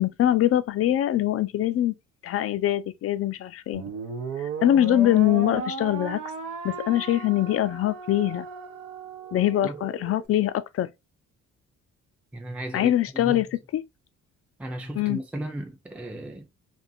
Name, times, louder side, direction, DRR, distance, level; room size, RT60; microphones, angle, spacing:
voice 1, 0.0-1.9 2.2-3.8 4.4-6.2 6.6-8.5 9.3-10.9 12.7-13.5 13.7-13.8 15.0-15.2, left 13 dB, 50° left, 0.4 m, -23 dB
sound 1, 3.7-10.3, right 5 dB, 85° right, 0.7 m, -35 dB
voice 2, 12.3-13.4 14.6-16.5, right 1 dB, 5° right, 0.5 m, -35 dB
2.6 x 2.5 x 2.5 m
cardioid pair, 90°, 30 cm